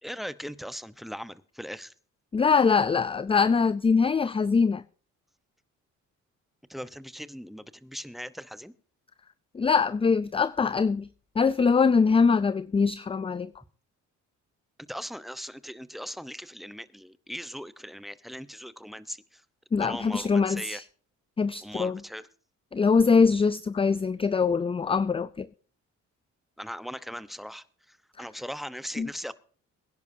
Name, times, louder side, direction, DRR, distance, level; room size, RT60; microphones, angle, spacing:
voice 1, 0.0-1.9 6.7-8.7 14.9-19.4 19.8-20.8 21.6-22.3 26.6-29.3, equal, ahead, 0.9 m, -39 dB
voice 2, 2.3-4.8 9.5-11.1 11.4-13.5 19.7-20.8 21.4-22.0 22.7-25.5 29.0-29.1, left 5 dB, 20° left, 0.4 m, -23 dB
22.5 x 10.5 x 2.7 m
cardioid pair, 90°, 30 cm